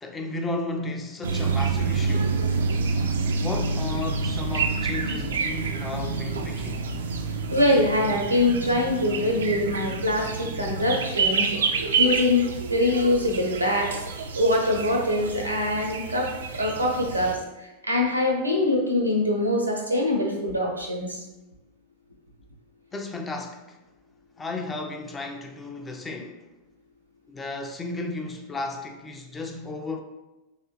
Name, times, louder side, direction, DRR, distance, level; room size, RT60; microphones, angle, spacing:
voice 1, 0.0-2.4 3.4-6.9 22.9-23.8 24.4-26.5 27.3-30.0, left 2 dB, 15° left, 0.4 m, -34 dB
sound 1, 1.2-17.3, right 4 dB, 65° right, 0.3 m, -28 dB
voice 2, 7.5-13.9 14.4-21.2, left 1 dB, 85° right, 0.8 m, -24 dB
3.3 x 3.3 x 2.8 m
figure-of-eight pair, 90°, 0 cm